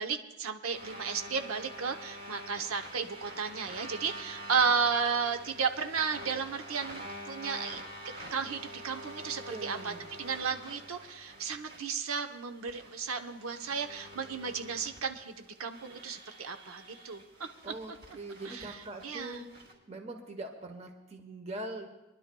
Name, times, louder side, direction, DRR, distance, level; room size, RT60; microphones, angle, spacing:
voice 1, 0.0-7.8 8.3-9.9 10.2-17.2 18.4-18.8 19.0-19.5, right 5 dB, 90° right, 6 dB, 0.8 m, -33 dB
sound 1, 0.7-19.7, equal, 50° right, 2.9 m, -47 dB
voice 2, 9.5-10.0 17.6-19.4 19.9-21.9, right 2 dB, 30° right, 4 dB, 1.0 m, -42 dB
26.0 x 11.0 x 2.2 m, 1.0 s
head